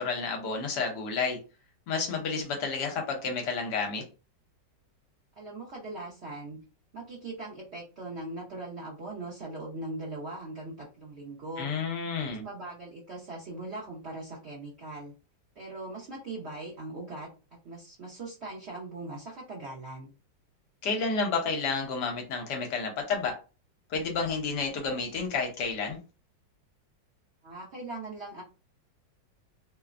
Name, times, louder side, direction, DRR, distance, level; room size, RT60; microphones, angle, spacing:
voice 1, 0.0-1.4 1.9-4.0 11.6-12.4 20.8-23.3 23.9-26.0, left 4 dB, 70° left, 3 dB, 1.2 m, -30 dB
voice 2, 5.4-6.6 6.9-11.7 12.4-15.1 15.6-20.1 27.4-28.4, right 2 dB, 65° right, -5 dB, 0.6 m, -40 dB
3.0 x 2.0 x 2.4 m, 0.32 s
omnidirectional pair, 2.0 m